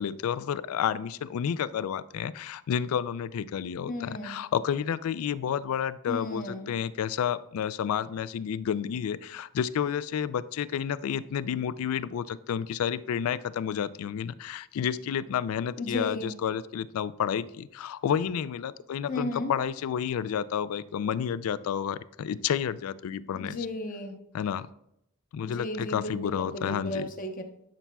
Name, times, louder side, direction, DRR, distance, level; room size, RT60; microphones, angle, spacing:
voice 1, 0.0-23.6 24.3-24.7 25.3-27.1, left 8 dB, 75° left, 16 dB, 0.3 m, -30 dB
voice 2, 3.9-4.4 6.1-6.7 15.8-16.4 19.1-19.5 23.3-24.2 25.4-27.4, left 1 dB, 40° left, 5 dB, 0.9 m, -34 dB
11.5 x 5.9 x 2.3 m, 0.77 s
head